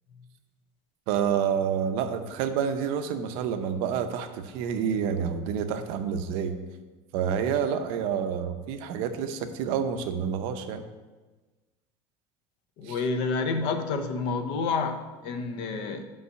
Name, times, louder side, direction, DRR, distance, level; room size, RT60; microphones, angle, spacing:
voice 1, 1.1-6.5 7.1-10.9 12.8-13.0, right 7 dB, 60° right, 8 dB, 0.6 m, -28 dB
voice 2, 12.8-16.0, left 4 dB, 50° left, 7 dB, 0.7 m, -29 dB
5.5 x 5.4 x 6.4 m, 1.3 s
cardioid pair, 175°, 11 cm